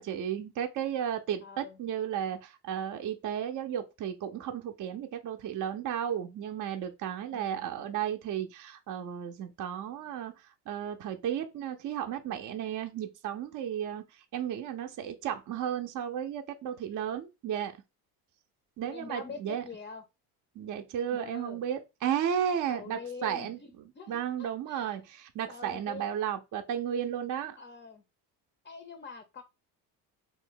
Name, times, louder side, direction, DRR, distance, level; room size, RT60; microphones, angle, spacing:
voice 1, 0.0-17.8 18.8-19.6 20.6-27.6, right 9 dB, 45° right, 0.5 m, -34 dB
voice 2, 1.4-1.8 7.3-7.7 18.9-20.0 21.1-21.6 22.7-24.9 25.5-26.1 27.6-28.0 28.6-29.4, left 5 dB, 25° left, 0.5 m, -44 dB
2.6 x 2.0 x 3.7 m
supercardioid pair, 75°, 46 cm